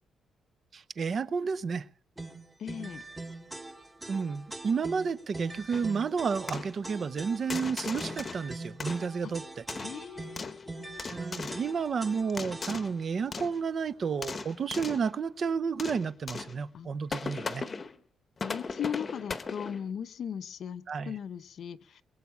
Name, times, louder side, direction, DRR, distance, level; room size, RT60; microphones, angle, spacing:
voice 1, 0.7-1.9 4.1-9.6 11.1-17.7 20.9-21.2, right 5 dB, 35° right, 16 dB, 0.6 m, -31 dB
sound 1, 2.2-13.0, right 2 dB, 10° right, 1.1 m, -43 dB
voice 2, 2.6-3.1 9.2-9.3 9.8-11.0 16.7-16.9 18.4-22.0, left 8 dB, 50° left, 14 dB, 0.7 m, -38 dB
sound 2, 5.7-6.0 6.5-6.8 7.5-8.5 8.8-9.3 9.7-10.6 11.0-11.7 12.3-13.0 13.3-13.6 14.0-15.1 15.8-16.6 17.1-17.9 18.4-19.9, left 4 dB, 25° left, 0.9 m, -38 dB
Organ, 12.0-16.5, right 6 dB, 70° right, 4.5 m, -67 dB
22.0 x 8.1 x 7.2 m, 0.43 s
cardioid pair, 180°, 0 cm